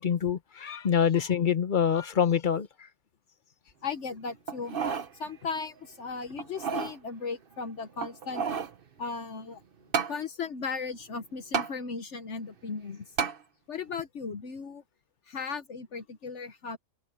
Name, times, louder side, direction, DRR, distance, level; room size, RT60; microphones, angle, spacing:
voice 1, 0.0-2.7, left 8 dB, 40° left, 0.9 m, -25 dB
voice 2, 3.8-4.8 5.2-8.4 9.0-9.6 10.1-13.1 13.7-14.8 15.3-16.8, left 5 dB, 60° left, 1.3 m, -36 dB
sound 1, 4.5-5.1 5.6-5.7 6.4-7.0 8.0-8.8 9.9-10.2 11.5-11.7 13.2-13.4 14.0-14.1, right 6 dB, 45° right, 1.1 m, -30 dB
open air
omnidirectional pair, 1.4 m